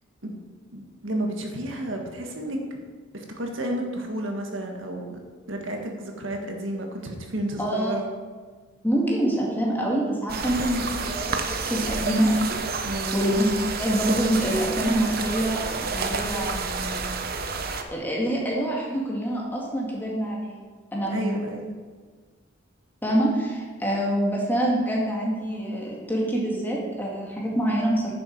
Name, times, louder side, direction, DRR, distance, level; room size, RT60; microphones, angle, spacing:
voice 1, 0.7-2.6 3.1-5.2 5.5-8.1 12.8-13.2 21.1-21.7, right 1 dB, 80° right, 2 dB, 1.6 m, -31 dB
voice 2, 7.6-7.9 8.8-12.3 13.1-13.5 13.8-16.9 17.9-20.6 20.9-21.5 23.0-28.1, right 1 dB, 10° left, -3 dB, 2.0 m, -26 dB
sound 1, 10.3-17.8, right 4 dB, 50° right, 0.8 m, -29 dB
10.5 x 7.0 x 5.2 m, 1.5 s
head